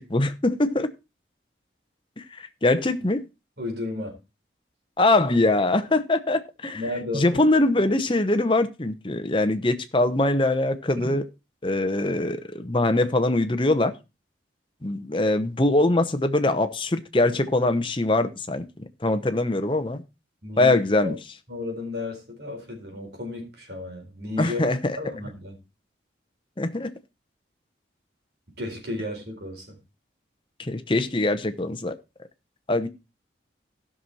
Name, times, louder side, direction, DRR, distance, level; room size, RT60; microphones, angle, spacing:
voice 1, 0.1-0.9 2.4-3.2 5.0-6.8 7.1-11.2 11.6-13.9 14.8-18.6 19.0-20.0 20.6-21.2 24.4-25.0 26.6-26.9 30.6-31.9 32.7-32.9, left 2 dB, 25° left, 0.9 m, -22 dB
voice 2, 3.6-4.1 6.7-7.4 7.8-7.9 11.0-11.1 20.4-21.1 21.5-24.7 24.9-25.5 28.6-29.8, left 2 dB, 60° right, 4.4 m, -33 dB
15.5 x 6.3 x 4.1 m
head